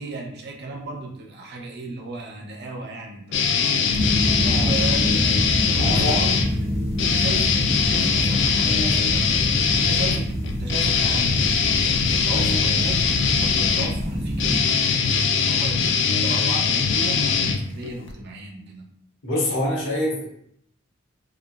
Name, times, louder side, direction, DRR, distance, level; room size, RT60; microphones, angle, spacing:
voice 1, 0.0-5.2 5.7-6.3 6.6-18.8, right 2 dB, 50° right, 1 dB, 0.5 m, -35 dB
sound 1, 3.3-6.5 7.0-18.1, left 6 dB, 60° left, 0.3 m, -22 dB
sound 2, 3.9-14.6, equal, 15° left, 0.6 m, -26 dB
voice 2, 5.8-6.2 19.2-20.2, left 1 dB, 75° left, -3 dB, 0.9 m, -25 dB
3.0 x 2.3 x 2.2 m, 0.71 s
head